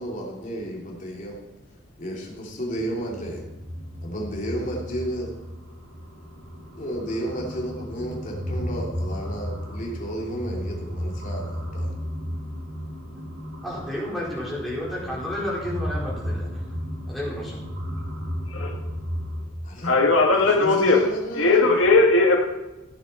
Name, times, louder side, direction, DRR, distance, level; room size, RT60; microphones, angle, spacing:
voice 1, 0.0-1.4 2.0-3.4 4.0-5.3 6.8-11.9 19.6-19.9 20.3-21.9, equal, 40° left, -2 dB, 3.2 m, -32 dB
sound 1, 2.8-19.4, equal, 55° right, 2.4 m, -34 dB
voice 2, 13.6-16.6 17.1-17.6, left 1 dB, ahead, -7 dB, 4.6 m, -31 dB
voice 3, 19.8-21.0 21.4-22.4, left 3 dB, 80° left, 0 dB, 2.0 m, -18 dB
15.0 x 8.8 x 4.4 m, 1.1 s
head